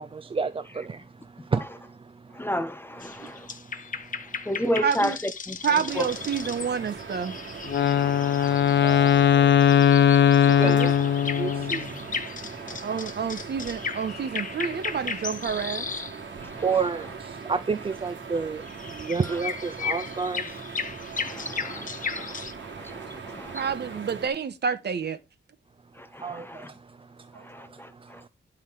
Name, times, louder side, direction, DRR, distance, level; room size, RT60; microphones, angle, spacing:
voice 1, 0.0-2.4 3.1-4.7 7.9-12.8 16.4-20.6 26.2-28.3, right 5 dB, 30° right, 0.4 m, -33 dB
voice 2, 2.4-3.5 4.5-5.1 5.5-5.6 6.0-6.1 7.9-8.6 12.7-12.8 21.2-21.9 22.2-22.3 22.8-23.0 23.3-23.6 26.1-26.7 27.5-28.2, equal, 10° left, 0.7 m, -31 dB
sound 1, 3.0-16.2 16.5-16.9 18.7-22.5, left 5 dB, 45° left, 1.0 m, -36 dB
voice 3, 4.8-5.2 5.6-7.3 10.6-10.9 12.8-15.9 23.5-25.2 27.3-27.4, right 6 dB, 60° right, 1.3 m, -28 dB
sound 2, 5.9-24.3, right 5 dB, 80° right, 2.6 m, -40 dB
Wind instrument woodwind instrument, 7.7-11.9, left 9 dB, 70° left, 0.5 m, -19 dB
10.5 x 5.6 x 4.7 m
wide cardioid pair, 155°, 19 cm